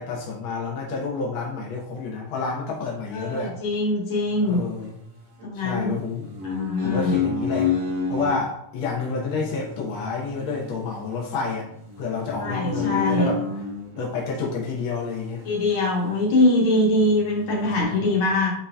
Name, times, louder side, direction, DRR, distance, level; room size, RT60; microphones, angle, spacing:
voice 1, 0.0-3.5 4.4-5.0 5.6-6.3 6.8-7.8 8.1-11.7 12.0-13.4 14.0-15.5 17.8-18.0, left 4 dB, 90° left, -3 dB, 1.1 m, -29 dB
voice 2, 3.1-4.6 5.4-6.0 6.4-7.1 12.4-13.3 15.4-18.5, left 2 dB, 55° left, -4 dB, 1.6 m, -22 dB
sound 1, 4.3-5.5 6.0-8.4 9.0-14.0 14.9-16.1 16.4-16.5 16.9-17.8, left 4 dB, 70° right, 1.9 m, -31 dB
7.5 x 2.7 x 2.3 m, 0.74 s
omnidirectional pair, 3.6 m